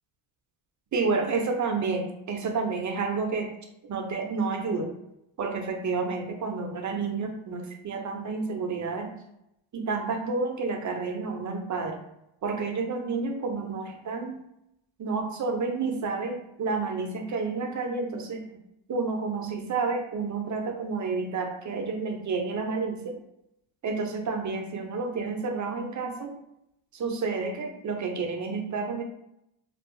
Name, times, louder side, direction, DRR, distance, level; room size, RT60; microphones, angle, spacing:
voice 1, 0.9-3.5 3.9-4.9 5.4-9.1 9.7-12.0 12.4-14.4 15.0-18.4 18.9-23.2 23.8-26.4 26.9-29.0, right 4 dB, 40° right, 3 dB, 0.5 m, -30 dB
2.6 x 2.2 x 2.5 m, 0.82 s
cardioid pair, 100°, 50 cm